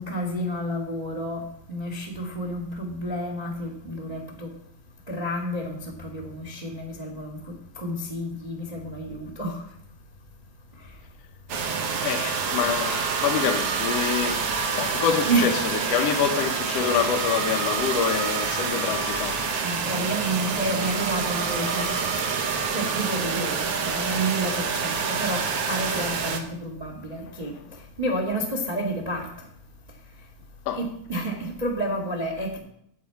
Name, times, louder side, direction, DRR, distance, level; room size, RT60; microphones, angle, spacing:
voice 1, 0.0-4.5 5.1-9.6 15.2-15.5 16.0-16.2 19.6-21.9 22.7-27.5 28.0-29.3 30.7-32.6, right 1 dB, 40° right, 0.5 m, -30 dB
sound 1, 11.5-26.4, right 5 dB, 90° right, 1.2 m, -27 dB
voice 2, 12.0-19.4 27.7-27.8 30.7-30.8, left 7 dB, 85° left, 1.4 m, -26 dB
11.0 x 8.7 x 4.6 m
omnidirectional pair, 4.1 m